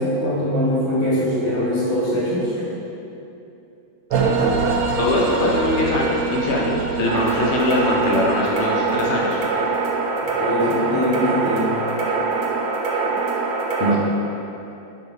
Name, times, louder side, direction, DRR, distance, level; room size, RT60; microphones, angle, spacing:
voice 1, 0.0-2.6 10.4-11.7, equal, 35° left, -9 dB, 1.8 m, -22 dB
sound 1, 4.1-10.1, right 4 dB, 85° right, 1.4 m, -25 dB
voice 2, 5.0-9.4 12.4-12.5 13.8-14.0, left 2 dB, 70° left, -4 dB, 0.6 m, -22 dB
sound 2, 7.1-13.9, right 4 dB, 65° right, 1.2 m, -24 dB
4.8 x 4.2 x 5.3 m, 2.8 s
omnidirectional pair, 2.1 m